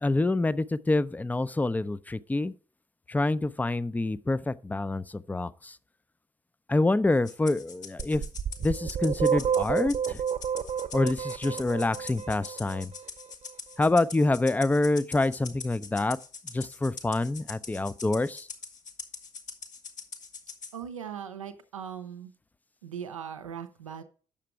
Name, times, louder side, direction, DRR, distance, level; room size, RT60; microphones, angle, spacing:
voice 1, 0.0-2.5 3.1-5.7 6.7-8.2 8.6-10.2 10.9-12.9 13.8-16.2 16.5-18.5, left 2 dB, 10° left, 0.5 m, -26 dB
Rattle (instrument), 7.3-20.8, left 5 dB, 50° left, 1.5 m, -43 dB
sound 1, 8.0-12.8, right 8 dB, 45° right, 0.9 m, -29 dB
voice 2, 20.7-22.3 22.8-24.0, right 8 dB, 85° right, 0.6 m, -39 dB
8.7 x 6.7 x 4.6 m
figure-of-eight pair, 40°, 16 cm